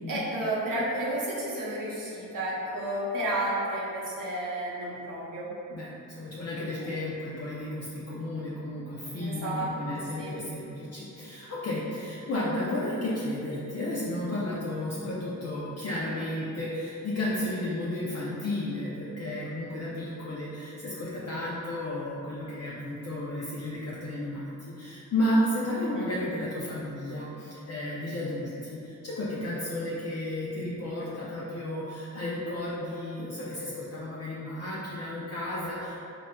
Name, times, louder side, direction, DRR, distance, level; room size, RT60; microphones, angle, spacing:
voice 1, 0.1-5.5 6.8-7.0 9.2-10.4 25.9-26.1, right 1 dB, 70° right, -7 dB, 0.8 m, -32 dB
voice 2, 5.7-36.0, left 1 dB, 50° left, -7 dB, 0.5 m, -33 dB
4.0 x 2.2 x 2.2 m, 2.8 s
cardioid pair, 70°, 34 cm